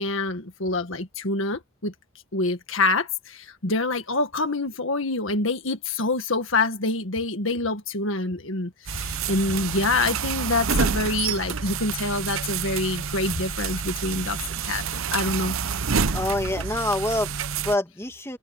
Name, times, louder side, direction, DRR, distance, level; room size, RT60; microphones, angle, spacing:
voice 1, 0.0-1.9 2.3-14.8 15.1-15.6, left 2 dB, 65° left, 1.7 m, -26 dB
sound 1, 8.9-17.8, right 6 dB, 75° right, 0.9 m, -28 dB
voice 2, 16.1-18.4, left 1 dB, 10° left, 2.4 m, -26 dB
open air
head